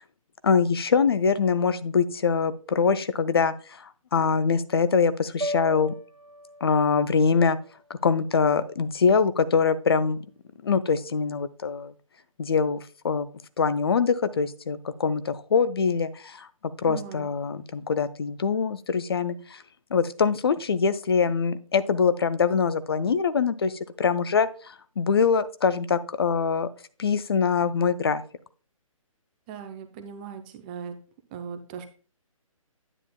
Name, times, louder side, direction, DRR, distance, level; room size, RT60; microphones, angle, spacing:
voice 1, 0.4-5.9 6.6-7.6 7.9-10.2 10.6-11.9 12.4-13.3 13.6-19.6 19.9-26.7 27.0-28.2, left 5 dB, 45° left, 14 dB, 0.5 m, -24 dB
sound 1, 5.4-9.7, equal, 75° right, 1.0 m, -39 dB
voice 2, 16.9-17.3 29.5-31.0 31.3-31.9, right 7 dB, 15° right, 7 dB, 0.5 m, -38 dB
9.8 x 8.7 x 2.2 m, 0.39 s
figure-of-eight pair, 135°, 18 cm